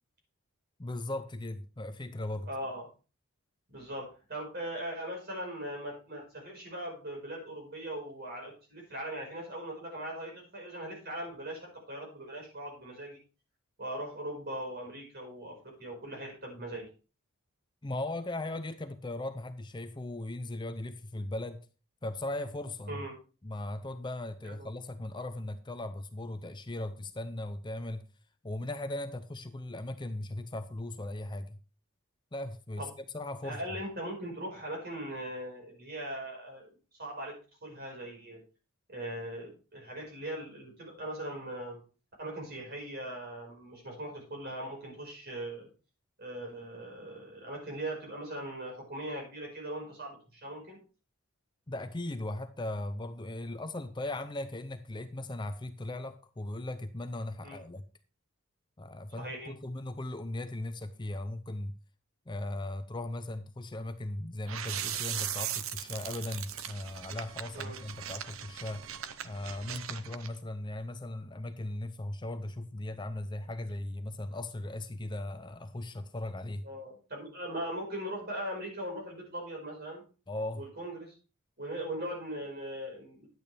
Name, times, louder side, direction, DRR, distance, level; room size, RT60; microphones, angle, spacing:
voice 1, 0.8-2.5 17.8-21.7 22.0-23.0 23.4-28.1 28.4-31.6 32.3-33.6 51.7-57.8 58.8-61.7 62.3-68.9 69.2-76.7 80.3-80.7, left 1 dB, 20° left, 0.6 m, -38 dB
voice 2, 2.5-2.9 3.7-13.2 13.8-16.9 22.9-23.1 24.4-24.7 32.8-32.9 33.4-36.7 37.0-38.4 38.9-41.8 42.2-45.7 46.2-50.8 57.4-57.6 59.2-59.5 67.5-67.8 76.6-80.0 80.5-81.2 81.6-83.3, right 1 dB, 45° right, 5.1 m, -40 dB
sound 1, 64.5-70.3, right 10 dB, 70° right, 0.7 m, -39 dB
10.5 x 8.9 x 3.4 m
head